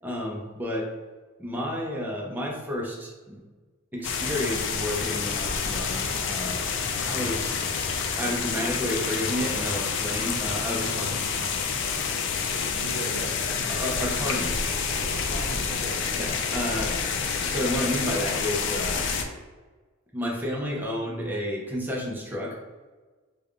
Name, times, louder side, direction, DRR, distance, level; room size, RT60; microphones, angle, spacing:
voice 1, 0.0-0.9 1.4-3.4 3.9-6.7 7.1-7.6 8.2-11.0 13.7-14.6 16.1-16.9 17.4-19.1 20.1-22.6, equal, 10° right, -3 dB, 0.5 m, -31 dB
sound 1, 4.0-19.2, left 5 dB, 60° left, 0.4 m, -28 dB
sound 2, 8.3-17.8, right 1 dB, 35° right, 0.9 m, -49 dB
voice 2, 10.8-11.2 12.8-13.4 15.1-16.0, right 2 dB, 60° right, 3 dB, 0.4 m, -38 dB
3.3 x 2.2 x 3.5 m, 1.3 s
head